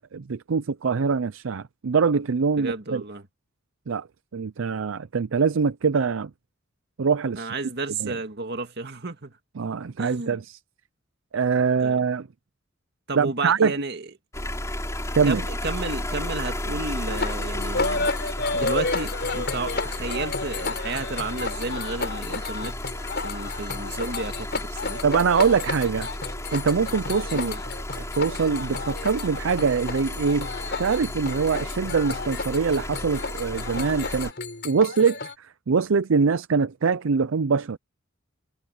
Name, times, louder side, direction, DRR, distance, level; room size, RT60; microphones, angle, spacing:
voice 1, 0.0-3.0 3.9-4.1 4.3-6.3 7.0-7.5 8.0-8.2 9.6-10.6 11.3-12.3 13.1-13.7 15.2-15.4 25.0-26.1 26.5-27.6 28.0-30.5 30.8-34.3 34.6-37.8, right 5 dB, 75° right, 0.5 m, -23 dB
voice 2, 2.6-3.2 7.3-9.3 10.0-10.4 11.8-12.0 13.1-14.1 15.2-18.1 18.5-22.8 23.2-25.0 27.3-27.6, right 3 dB, 55° right, 2.1 m, -32 dB
sound 1, 14.3-34.3, left 1 dB, 15° left, 4.3 m, -33 dB
sound 2, 17.1-35.3, left 3 dB, 55° left, 5.7 m, -32 dB
head